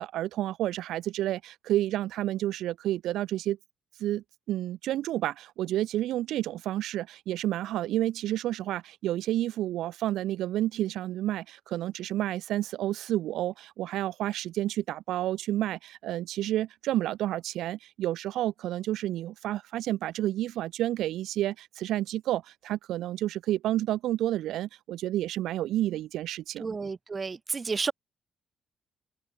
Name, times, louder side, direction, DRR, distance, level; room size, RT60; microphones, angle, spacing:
voice 1, 0.0-3.6 4.0-26.7, right 14 dB, 85° right, 4.2 m, -30 dB
voice 2, 26.6-27.9, right 4 dB, 35° right, 1.6 m, -31 dB
cardioid pair, 90°, 0 cm